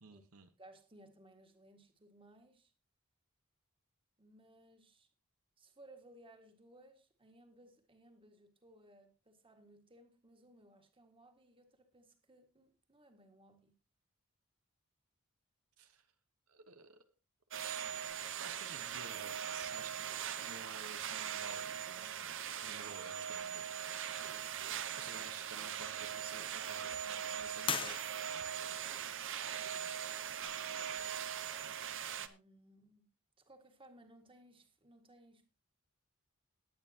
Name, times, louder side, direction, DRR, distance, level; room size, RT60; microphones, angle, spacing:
voice 1, 0.0-0.5 15.8-16.1 16.5-17.0 17.5-17.9 18.4-20.1 20.4-22.3 22.6-24.4 24.6-28.0, right 5 dB, 85° right, 1.2 m, -52 dB
voice 2, 0.6-2.7 4.2-5.1 5.6-13.7 32.2-33.1 33.4-35.5, right 1 dB, 25° right, 1.9 m, -61 dB
sound 1, 17.5-32.3, right 9 dB, 60° right, 0.9 m, -41 dB
sound 2, 23.3-31.8, left 6 dB, 25° left, 0.6 m, -48 dB
20.0 x 8.8 x 2.9 m
head